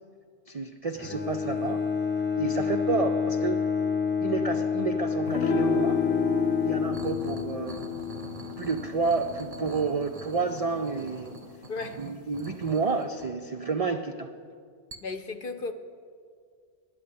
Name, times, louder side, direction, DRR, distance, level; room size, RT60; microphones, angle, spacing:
voice 1, 0.5-1.8 2.4-3.6 4.2-6.0 6.6-7.9 8.6-11.4 12.0-14.3, right 4 dB, 60° right, 5 dB, 0.3 m, -30 dB
Bowed string instrument, 0.9-7.6, left 5 dB, 15° left, 0.5 m, -28 dB
sound 1, 5.3-11.8, left 6 dB, 90° left, 1.2 m, -32 dB
sound 2, 6.9-14.0 14.9-15.0, right 3 dB, 35° right, 0.8 m, -45 dB
voice 2, 11.7-12.0 15.0-15.7, left 3 dB, 55° left, 9 dB, 0.8 m, -35 dB
10.0 x 9.3 x 8.5 m, 2.1 s
omnidirectional pair, 1.3 m